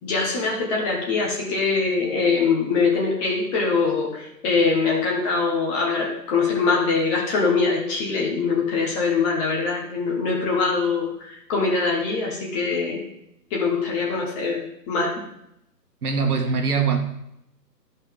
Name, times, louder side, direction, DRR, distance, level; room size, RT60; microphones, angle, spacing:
voice 1, 0.0-13.0 13.5-15.1, left 4 dB, 20° left, -2 dB, 1.3 m, -23 dB
voice 2, 16.0-17.0, right 5 dB, 60° right, 4 dB, 1.6 m, -22 dB
12.5 x 5.5 x 3.7 m, 0.79 s
figure-of-eight pair, 145°, 50 cm